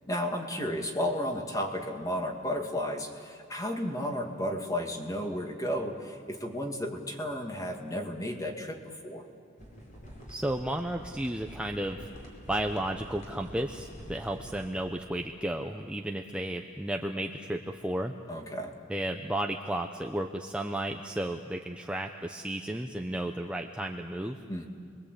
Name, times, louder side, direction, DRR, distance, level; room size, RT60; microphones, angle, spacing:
voice 1, 0.1-9.3 18.3-18.8 24.5-24.7, left 1 dB, 20° left, 3 dB, 2.4 m, -33 dB
sound 1, 9.6-14.7, equal, 40° left, 5.0 m, -47 dB
voice 2, 10.3-12.1 12.5-18.1 18.9-24.4, right 1 dB, 5° right, 3 dB, 0.8 m, -33 dB
30.0 x 22.0 x 8.3 m, 2.3 s
head